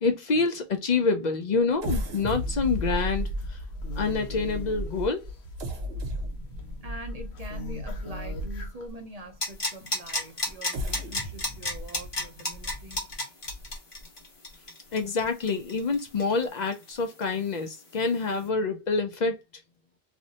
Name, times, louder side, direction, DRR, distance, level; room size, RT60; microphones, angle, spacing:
voice 1, 0.0-3.6 4.0-5.3 14.9-19.4, left 4 dB, 55° left, 0.5 m, -27 dB
sound 1, 1.8-8.9 9.5-9.6 10.5-14.0 14.5-14.6 15.0-15.2, equal, 85° right, 1.0 m, -35 dB
sound 2, 2.1-9.3 9.6-10.7, left 1 dB, 85° left, 0.9 m, -43 dB
voice 2, 6.8-13.1, right 1 dB, 45° right, 0.6 m, -44 dB
sound 3, 9.4-16.9 17.2-17.3, left 1 dB, 35° left, 0.8 m, -32 dB
2.5 x 2.0 x 2.6 m
omnidirectional pair, 1.1 m